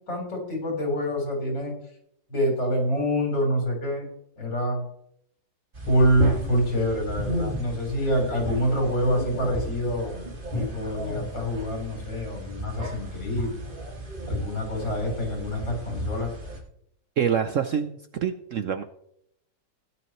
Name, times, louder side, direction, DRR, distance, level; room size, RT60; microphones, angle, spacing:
voice 1, 0.1-1.7 2.3-4.1 4.4-4.8 5.9-10.1 10.5-13.5 14.3-16.3, equal, 85° left, 0 dB, 4.7 m, -26 dB
sound 1, 5.7-16.6, equal, 30° right, 2.1 m, -34 dB
voice 2, 17.2-18.8, right 8 dB, 65° right, 8 dB, 0.8 m, -26 dB
16.5 x 10.5 x 3.1 m, 0.73 s
omnidirectional pair, 1.9 m